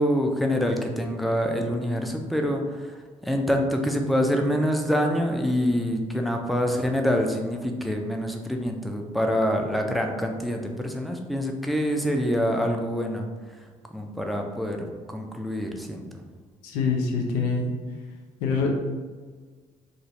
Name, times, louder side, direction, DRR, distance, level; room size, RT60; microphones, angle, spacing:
voice 1, 0.0-2.9 3.2-13.3 13.9-14.8 15.1-16.2, equal, ahead, 2 dB, 0.4 m, -26 dB
voice 2, 16.6-17.7 18.4-18.7, left 4 dB, 70° left, 1 dB, 0.5 m, -25 dB
2.5 x 2.4 x 3.0 m, 1.5 s
figure-of-eight pair, 50°, 17 cm